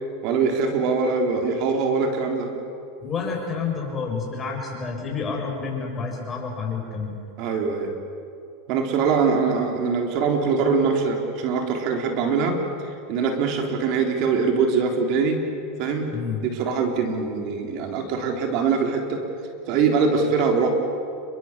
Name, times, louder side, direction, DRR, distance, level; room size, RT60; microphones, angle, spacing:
voice 1, 0.2-2.5 7.4-7.9 8.7-15.4 15.8-16.1 16.4-19.2 19.7-20.7, right 5 dB, 55° right, 3 dB, 3.7 m, -23 dB
voice 2, 3.0-7.2 16.1-16.4, left 5 dB, 25° left, 0 dB, 6.8 m, -29 dB
29.5 x 23.0 x 7.4 m, 2.5 s
supercardioid pair, 120°, 0 cm